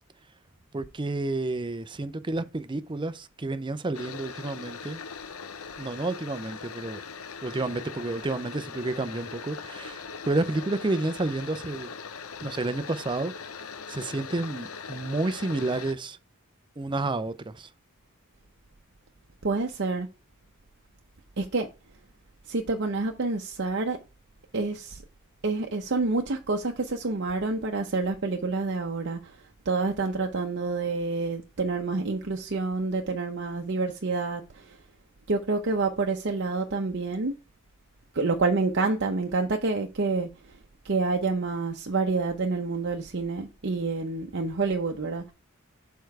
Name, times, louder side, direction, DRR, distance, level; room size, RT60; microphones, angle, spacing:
voice 1, 0.7-5.0 5.8-7.0 7.4-11.9 12.4-13.3 13.9-16.2 16.8-17.7, right 2 dB, 20° right, 0.5 m, -30 dB
sound 1, 3.9-15.9, left 5 dB, 75° left, 0.8 m, -40 dB
voice 2, 19.4-20.1 21.4-21.7 22.5-24.0 24.5-25.0 25.4-29.2 29.7-34.4 35.3-37.3 38.1-40.3 40.8-45.2, right 3 dB, 55° right, 0.7 m, -28 dB
6.8 x 4.6 x 4.7 m
head